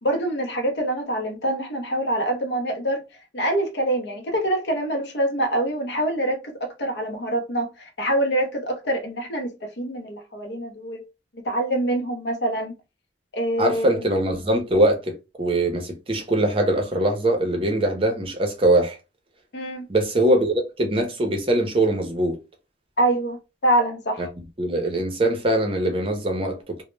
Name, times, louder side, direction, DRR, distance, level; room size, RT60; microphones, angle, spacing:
voice 1, 0.0-3.0 3.3-11.0 11.4-12.8 13.3-14.1 19.5-19.9 23.0-24.3, right 1 dB, 65° left, 0.6 m, -25 dB
voice 2, 13.6-19.0 19.9-22.4 24.2-24.3 24.6-26.8, right 1 dB, 30° right, 0.6 m, -22 dB
2.0 x 2.0 x 3.1 m
head